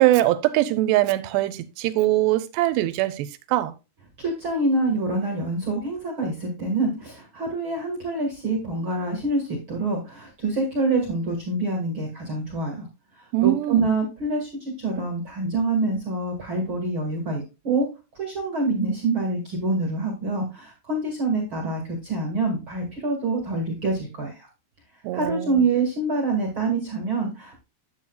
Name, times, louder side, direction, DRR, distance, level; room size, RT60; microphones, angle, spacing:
voice 1, 0.0-3.7 13.3-13.8 25.0-25.7, right 16 dB, 85° right, 2.6 m, -22 dB
voice 2, 4.2-12.9 13.1-17.9 18.1-24.5 25.1-27.6, right 2 dB, 55° right, 1.4 m, -26 dB
9.9 x 8.7 x 2.3 m
omnidirectional pair, 5.1 m